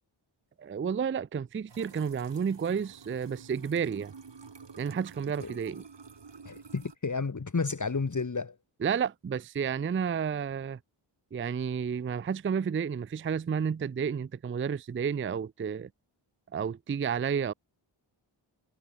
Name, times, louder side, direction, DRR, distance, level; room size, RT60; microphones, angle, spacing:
voice 1, 0.6-4.1 4.8-5.8 8.8-10.8 11.3-15.9 16.5-17.5, right 7 dB, 25° right, 0.4 m, -31 dB
sound 1, 1.7-7.0, right 5 dB, 60° right, 3.7 m, -50 dB
voice 2, 6.5-8.6, left 4 dB, 35° left, 1.8 m, -31 dB
wide cardioid pair, 85°, 49 cm